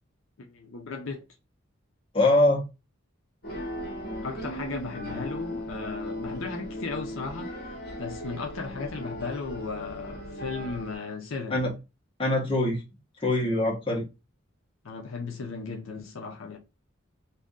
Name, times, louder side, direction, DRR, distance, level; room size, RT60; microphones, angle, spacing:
voice 1, 0.4-1.2 4.2-11.6 14.8-16.6, left 4 dB, 70° left, 0.6 m, -36 dB
voice 2, 2.1-2.6 11.5-11.7 12.2-12.8 13.2-14.0, left 1 dB, 25° left, 1.0 m, -23 dB
sound 1, 3.4-11.0, equal, 50° left, 1.2 m, -37 dB
2.7 x 2.6 x 3.5 m
head